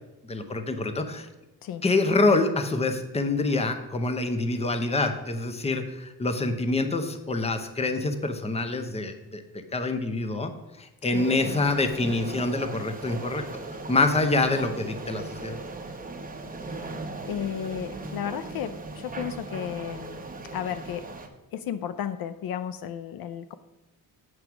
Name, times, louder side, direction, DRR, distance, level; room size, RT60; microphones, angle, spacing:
voice 1, 0.2-1.3 1.8-9.4 9.7-10.5 10.8-13.4 13.9-15.6, left 2 dB, 15° left, 8 dB, 0.7 m, -26 dB
sound 1, 11.1-21.3, right 2 dB, 20° right, 0.9 m, -37 dB
voice 2, 17.3-20.3 20.5-21.1 21.5-23.5, left 9 dB, 65° left, 12 dB, 0.5 m, -34 dB
7.8 x 4.7 x 6.0 m, 0.98 s
cardioid pair, 110°, 38 cm